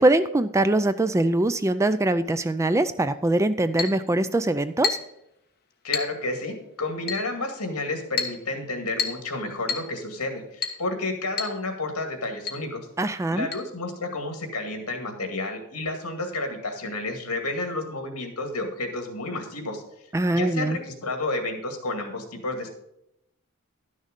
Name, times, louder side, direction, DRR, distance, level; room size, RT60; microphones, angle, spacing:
voice 1, 0.0-5.0 13.0-13.5 20.1-20.8, right 2 dB, 15° right, 11 dB, 0.3 m, -22 dB
Chink clink, 3.8-4.0 4.8-5.2 5.9-6.2 7.1-7.3 8.2-8.4 9.0-9.3 9.7-9.9 10.6-10.8 11.4-11.6 11.8-11.9 12.5-12.6 13.5-13.6, left 6 dB, 45° left, 1.2 m, -29 dB
voice 2, 5.8-12.8 13.3-19.8 20.3-22.7, left 2 dB, 80° left, 4 dB, 2.2 m, -31 dB
11.5 x 6.4 x 5.2 m, 0.81 s
head